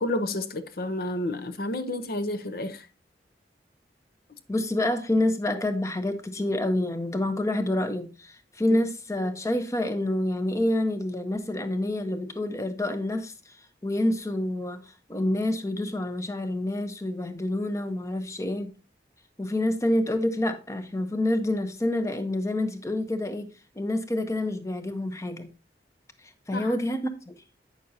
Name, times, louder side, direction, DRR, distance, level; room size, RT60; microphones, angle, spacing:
voice 1, 0.0-2.9 8.7-8.8 26.5-26.7, left 1 dB, 55° left, 0.7 m, -30 dB
voice 2, 4.5-13.6 13.8-18.7 19.4-23.5 23.8-25.5 26.5-27.3, left 1 dB, 15° left, 0.7 m, -27 dB
8.6 x 6.2 x 2.7 m
head